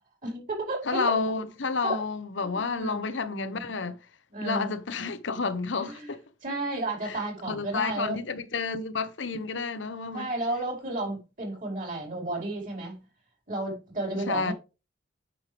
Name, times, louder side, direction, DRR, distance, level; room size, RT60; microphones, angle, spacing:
voice 1, 0.2-1.1 1.8-2.0 2.4-3.7 4.3-4.7 5.8-6.1 6.4-8.2 10.1-13.0 13.5-14.5, right 2 dB, 45° right, 5.1 m, -33 dB
voice 2, 0.9-4.0 4.4-6.2 7.1-7.2 7.5-10.3 14.3-14.5, left 4 dB, 70° left, 0.9 m, -30 dB
8.8 x 6.5 x 3.4 m
head